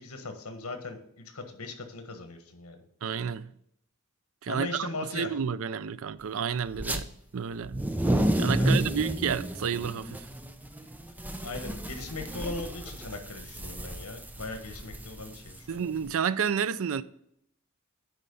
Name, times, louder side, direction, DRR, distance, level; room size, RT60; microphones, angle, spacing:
voice 1, 0.0-2.8 4.5-5.3 8.5-9.0 11.4-15.8, left 3 dB, 80° left, 1.5 m, -39 dB
voice 2, 3.0-3.5 4.4-7.1 7.3-7.8 8.3-10.3 15.7-17.0, right 7 dB, 65° right, 0.4 m, -30 dB
sound 1, 6.7-7.0 7.6-16.1, right 1 dB, 10° right, 0.6 m, -31 dB
10.5 x 4.5 x 5.4 m
head